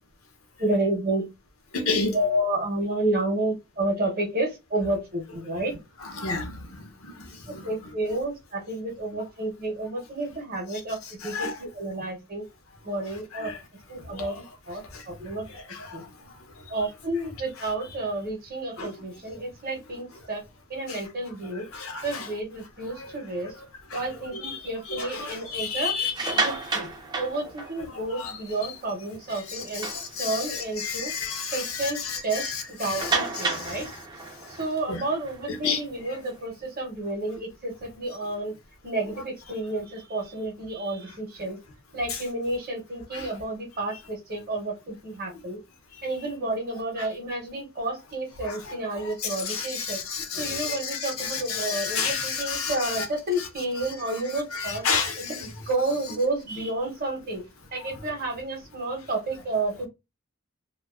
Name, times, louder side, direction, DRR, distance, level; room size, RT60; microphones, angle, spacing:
voice 1, 0.6-1.3 2.1-5.8 7.5-12.4 12.8-13.5 13.9-15.5 15.9-16.1 16.7-20.4 20.7-21.7 22.0-23.5 23.9-26.0 26.3-26.9 27.1-29.9 30.2-31.1 31.5-33.9 34.6-38.5 38.8-41.6 41.9-45.6 46.0-50.0 50.4-54.8 55.2-57.4 57.7-59.9, right 2 dB, 40° right, 0.7 m, -30 dB
voice 2, 1.7-2.2 6.0-7.7 11.2-11.5 13.3-13.6 14.1-14.4 14.9-15.0 15.5-16.1 18.8-18.9 20.9-21.0 21.7-22.3 22.9-23.2 23.9-24.0 24.4-26.5 28.1-28.4 29.5-33.8 34.9-35.0 35.5-35.8 42.1-42.2 43.1-43.3 45.9-46.0 48.4-48.7 49.0-53.1 53.4-53.5 54.3-55.5, left 5 dB, 70° left, 0.7 m, -32 dB
sound 1, 26.0-28.1 28.6-28.7 29.1-29.2 29.6-30.6 31.1-31.2 31.6-31.7 33.0-36.3, right 4 dB, 20° right, 0.4 m, -31 dB
2.4 x 2.2 x 2.3 m
head